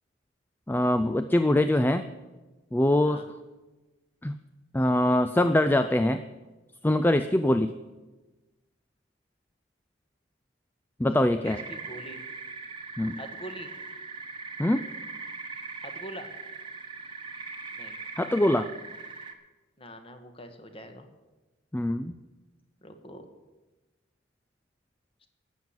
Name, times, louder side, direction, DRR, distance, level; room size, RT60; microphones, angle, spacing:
voice 1, 0.7-2.1 2.7-3.2 4.2-4.4 4.7-6.2 6.8-7.8 11.0-11.6 13.0-13.2 14.6-14.8 18.2-18.7 21.7-22.2, left 1 dB, 10° left, 10 dB, 0.4 m, -23 dB
voice 2, 11.3-12.2 13.2-13.7 15.8-16.3 17.7-18.0 19.8-21.1 22.8-23.3 25.2-25.3, equal, 30° left, 6 dB, 1.4 m, -44 dB
sound 1, 11.4-19.3, right 4 dB, 25° right, 1.2 m, -40 dB
13.5 x 9.2 x 7.2 m, 1.2 s
head